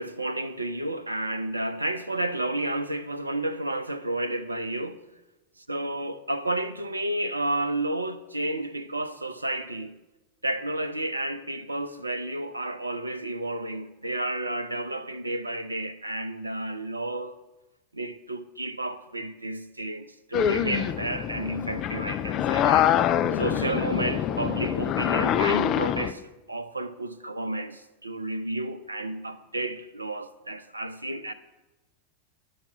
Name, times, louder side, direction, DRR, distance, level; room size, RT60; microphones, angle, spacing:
voice 1, 0.0-5.0 5.7-10.0 10.4-17.3 17.9-22.9 23.3-26.2 26.5-31.3, right 1 dB, 80° right, 0.5 m, -31 dB
sound 1, 20.3-26.1, left 10 dB, 35° left, 0.4 m, -25 dB
9.3 x 5.9 x 5.6 m
figure-of-eight pair, 90°, 0 cm